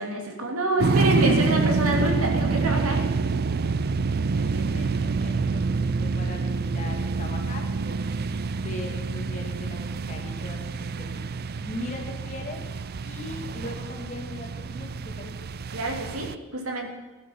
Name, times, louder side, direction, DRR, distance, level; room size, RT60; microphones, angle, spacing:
voice 1, 0.0-3.0 15.7-16.9, right 2 dB, 75° right, 1 dB, 2.8 m, -27 dB
sound 1, 0.8-16.3, right 4 dB, 45° right, 0.5 m, -27 dB
voice 2, 3.6-12.7 13.0-15.3, left 2 dB, 35° left, 1 dB, 2.4 m, -40 dB
18.0 x 12.0 x 5.8 m, 1.2 s
head